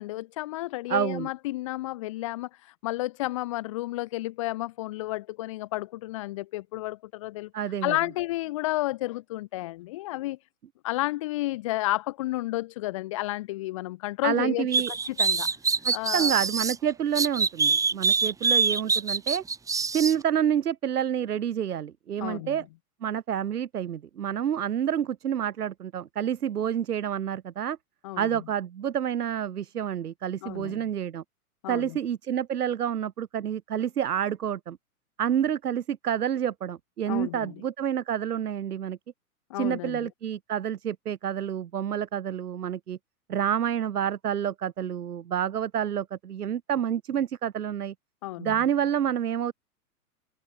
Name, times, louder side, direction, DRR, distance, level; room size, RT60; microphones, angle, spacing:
voice 1, 0.0-2.5 2.8-7.5 7.8-10.4 10.8-14.7 15.1-15.5 15.9-16.3 22.2-22.6 28.0-28.4 30.4-30.9 31.6-32.0 37.1-37.5 39.5-40.1 48.2-48.7, left 18 dB, 25° left, 0.4 m, -31 dB
voice 2, 0.9-1.3 7.5-8.0 14.2-14.9 15.8-19.4 19.9-22.7 23.0-27.8 28.2-31.2 31.7-34.8 35.2-39.0 39.5-43.0 43.3-47.9 48.4-49.5, right 9 dB, 85° right, 2.1 m, -28 dB
sound 1, 14.7-16.8 17.2-20.1, right 5 dB, 5° right, 1.0 m, -24 dB
hypercardioid pair, 135°, 44 cm